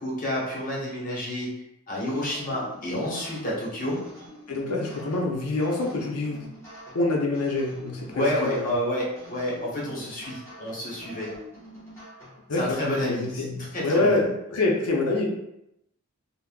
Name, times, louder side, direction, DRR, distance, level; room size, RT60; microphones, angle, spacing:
voice 1, 0.0-1.5 1.9-4.0 8.1-11.3 12.5-14.3, left 1 dB, 35° left, -5 dB, 0.9 m, -29 dB
sound 1, 2.1-12.7, equal, 10° left, 1.0 m, -46 dB
voice 2, 4.5-6.5 6.9-8.7 12.5-14.2 14.5-15.3, left 2 dB, 85° left, 0 dB, 0.6 m, -26 dB
3.5 x 2.1 x 2.2 m, 0.81 s
head